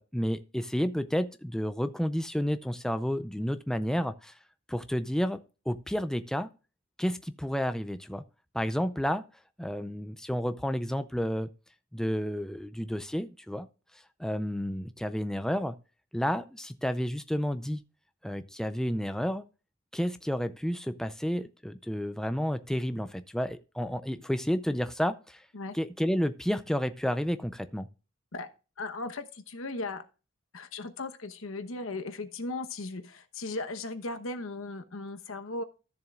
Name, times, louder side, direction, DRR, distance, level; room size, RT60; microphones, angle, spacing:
voice 1, 0.0-4.3 4.7-6.5 7.0-8.2 8.5-9.2 9.6-11.5 11.9-13.7 14.2-15.8 16.1-17.8 18.2-19.4 19.9-25.4 25.7-27.9, equal, 5° left, 0.4 m, -31 dB
voice 2, 28.8-30.0 30.5-35.6, left 2 dB, 80° left, 1.0 m, -37 dB
13.5 x 7.1 x 2.4 m
head